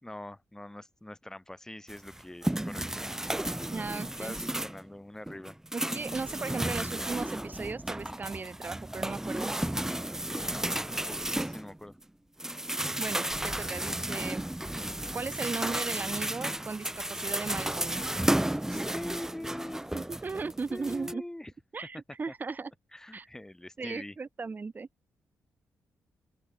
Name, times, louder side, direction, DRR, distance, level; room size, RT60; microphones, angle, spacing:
voice 1, 0.0-3.0 4.1-5.6 10.2-12.0 18.7-19.8 20.7-21.5 22.9-24.2, left 1 dB, 10° left, 2.6 m, -43 dB
sound 1, 1.9-4.9 5.3-12.0 12.4-21.1, right 1 dB, 10° right, 2.5 m, -33 dB
voice 2, 3.7-4.4 5.7-9.5 13.0-14.4 15.1-18.0 19.9-21.2 21.7-22.7 23.1-23.3 23.8-24.9, right 4 dB, 35° right, 1.5 m, -37 dB
open air
cardioid pair, 80°, 6 cm